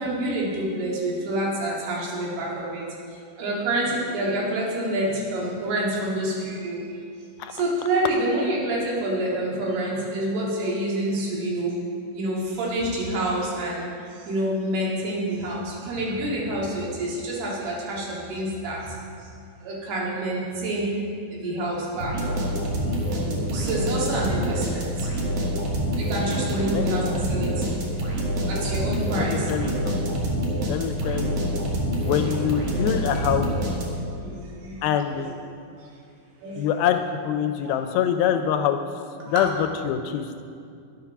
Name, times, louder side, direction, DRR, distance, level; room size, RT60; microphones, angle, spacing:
voice 1, 0.0-2.8 3.4-6.9 7.5-11.8 12.1-13.9 14.2-19.0 19.6-21.0 21.3-22.2 22.7-22.9 23.5-25.1 26.0-27.8 28.5-29.5 33.1-33.3 34.1-34.9 35.1-35.3 35.7-35.9 36.4-36.7 37.6-37.7 39.3-39.4, right 1 dB, 90° right, -4 dB, 4.0 m, -27 dB
sound 1, 22.0-34.2, equal, 60° right, 1.6 m, -26 dB
voice 2, 26.7-27.0 29.1-30.2 30.7-31.5 32.0-33.5 34.8-35.3 36.6-38.8 39.3-40.3, left 9 dB, 85° left, 8 dB, 2.3 m, -25 dB
10.0 x 7.2 x 5.8 m, 2.4 s
omnidirectional pair, 4.4 m